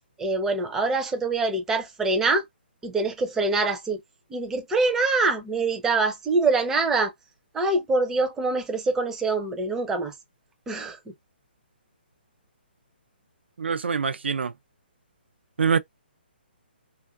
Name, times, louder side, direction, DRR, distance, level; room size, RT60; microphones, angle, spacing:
voice 1, 0.2-2.4 2.8-4.0 4.3-7.1 7.5-10.1 10.7-11.1, right 3 dB, 5° right, 0.4 m, -24 dB
voice 2, 13.6-14.5 15.6-15.8, right 6 dB, 90° right, 0.4 m, -24 dB
2.4 x 2.3 x 2.3 m
hypercardioid pair, 155°, 6 cm